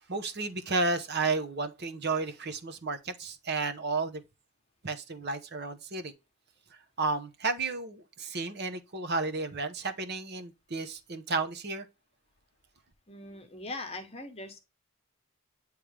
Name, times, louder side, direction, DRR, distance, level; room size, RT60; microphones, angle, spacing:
voice 1, 0.1-4.2 4.8-6.1 7.0-11.8, right 3 dB, 50° right, 0.9 m, -32 dB
voice 2, 13.1-14.6, left 2 dB, 30° left, 1.1 m, -41 dB
8.7 x 3.2 x 3.3 m
head